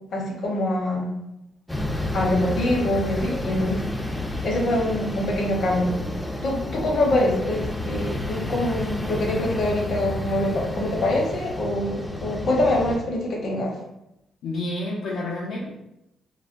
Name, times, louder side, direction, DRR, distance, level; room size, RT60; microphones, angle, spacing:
voice 1, 0.1-1.1 2.1-3.8 4.4-6.0 6.4-13.8, left 1 dB, 60° left, -1 dB, 0.8 m, -24 dB
sound 1, 1.7-13.0, left 1 dB, 10° left, 0.4 m, -30 dB
voice 2, 14.4-15.7, left 2 dB, 80° left, -5 dB, 0.5 m, -29 dB
3.2 x 2.1 x 2.5 m, 0.87 s
cardioid pair, 90°, 0 cm